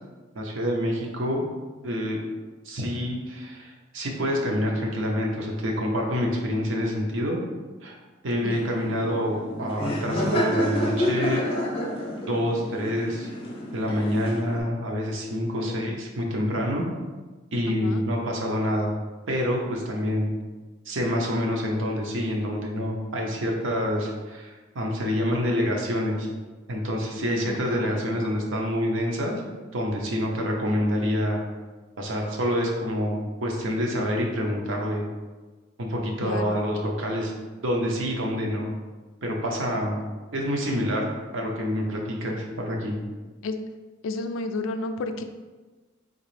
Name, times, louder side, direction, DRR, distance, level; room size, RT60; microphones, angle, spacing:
voice 1, 0.3-1.4 1.8-2.2 2.6-7.4 7.8-8.0 8.2-11.4 12.3-13.3 13.7-16.8 17.5-18.9 19.3-20.3 20.8-26.3 26.7-29.4 29.7-31.4 32.0-35.1 35.8-37.3 37.6-38.7 39.2-40.0 40.3-41.0 41.3-43.0, equal, 75° right, 0 dB, 0.8 m, -27 dB
Laughter, 8.3-14.6, equal, 30° left, 0.6 m, -29 dB
voice 2, 15.6-15.9 17.7-18.0 27.5-28.0 36.2-36.6 43.4-43.5 44.0-45.2, left 3 dB, 85° left, 8 dB, 0.3 m, -32 dB
3.9 x 2.9 x 3.2 m, 1.3 s
head